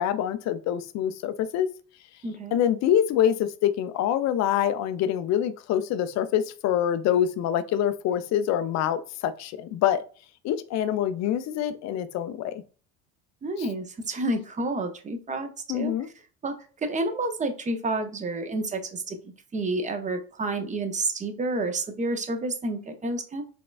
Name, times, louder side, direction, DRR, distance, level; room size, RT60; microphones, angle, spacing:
voice 1, 0.0-1.7 2.5-10.0 10.4-12.6 13.6-13.7 15.7-16.1, left 10 dB, 45° left, 0.4 m, -25 dB
voice 2, 2.2-2.6 13.4-15.9 16.4-16.5 16.8-23.4, right 2 dB, 20° right, 0.5 m, -30 dB
4.1 x 2.3 x 2.3 m
supercardioid pair, 90°, 39 cm